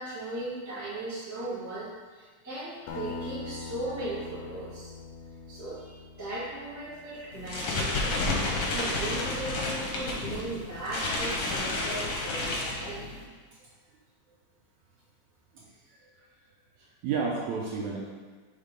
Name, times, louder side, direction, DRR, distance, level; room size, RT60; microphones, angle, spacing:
voice 1, 0.0-4.9 5.5-8.1 8.7-13.0, right 1 dB, 15° left, -10 dB, 0.6 m, -37 dB
Acoustic guitar, 2.9-7.7, left 3 dB, 90° left, 2.3 m, -42 dB
water shake, 7.3-13.2, left 2 dB, 65° left, 1.5 m, -31 dB
voice 2, 15.5-16.3 16.8-18.0, right 5 dB, 75° right, -2 dB, 1.8 m, -33 dB
5.5 x 3.7 x 5.2 m, 1.5 s
omnidirectional pair, 3.7 m